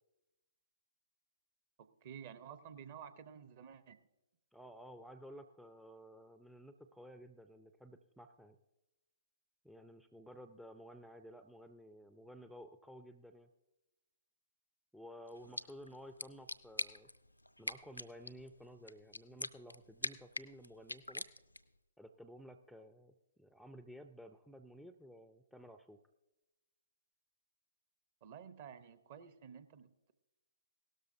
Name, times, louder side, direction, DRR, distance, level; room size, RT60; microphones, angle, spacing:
voice 1, 1.8-4.0 15.4-15.6 28.2-30.1, right 8 dB, 40° right, 12 dB, 0.7 m, -52 dB
voice 2, 4.5-8.6 9.6-13.5 14.9-17.1 17.6-21.2 22.0-26.0, equal, ahead, 10 dB, 0.4 m, -54 dB
sound 1, 15.3-21.8, left 1 dB, 90° left, 0.4 m, -46 dB
17.0 x 13.0 x 2.6 m, 1.0 s
figure-of-eight pair, 125°, 0 cm